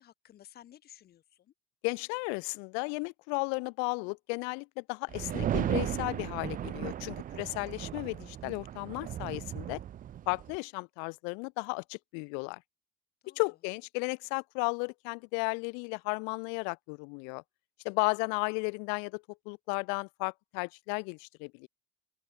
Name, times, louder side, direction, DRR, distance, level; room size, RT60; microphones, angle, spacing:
voice 1, 0.0-1.5 13.2-13.4, left 11 dB, 55° left, 2.7 m, -56 dB
voice 2, 1.8-9.8 10.3-12.6 13.4-17.4 17.8-21.7, left 40 dB or more, 75° left, 0.4 m, -34 dB
sound 1, 5.1-10.6, right 11 dB, 45° right, 0.7 m, -35 dB
hypercardioid pair, 65°, 19 cm